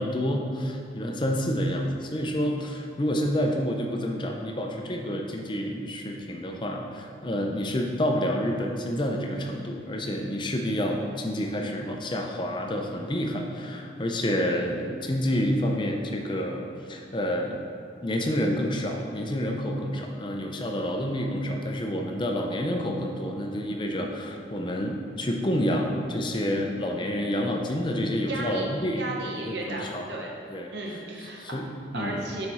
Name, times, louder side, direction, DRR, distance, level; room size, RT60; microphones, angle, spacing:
voice 1, 0.0-17.6 18.0-29.0 29.4-30.1 30.5-30.7 31.4-32.3, equal, 25° left, 2 dB, 0.5 m, -28 dB
voice 2, 28.2-28.7 29.0-30.3 30.7-31.4 31.9-32.5, right 2 dB, 65° right, -2 dB, 0.9 m, -34 dB
6.8 x 4.3 x 4.1 m, 2.7 s
head